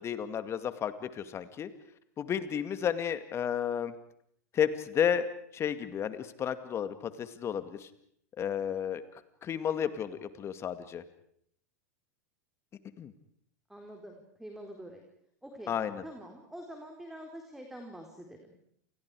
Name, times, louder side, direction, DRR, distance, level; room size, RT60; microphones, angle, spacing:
voice 1, 0.0-1.7 2.2-3.9 4.5-5.3 5.5-7.9 8.4-9.0 9.4-11.0 13.0-13.1 15.7-16.0, left 8 dB, 30° left, 11 dB, 2.3 m, -32 dB
voice 2, 13.7-15.0 15.4-15.8 16.0-18.5, right 1 dB, 5° right, 2 dB, 4.1 m, -46 dB
29.0 x 29.0 x 5.0 m, 0.66 s
hypercardioid pair, 90°, 9 cm